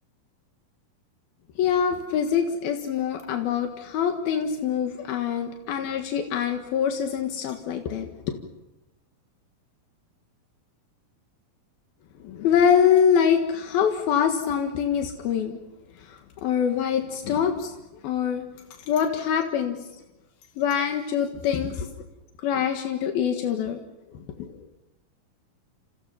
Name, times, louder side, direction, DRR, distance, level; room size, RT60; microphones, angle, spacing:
voice 1, 1.6-8.4 12.2-15.6 16.0-17.7 18.0-18.5 18.9-19.8 20.6-21.9 22.4-23.8 24.1-24.6, left 8 dB, 85° left, 4 dB, 3.5 m, -24 dB
30.0 x 28.5 x 5.7 m, 0.98 s
omnidirectional pair, 4.2 m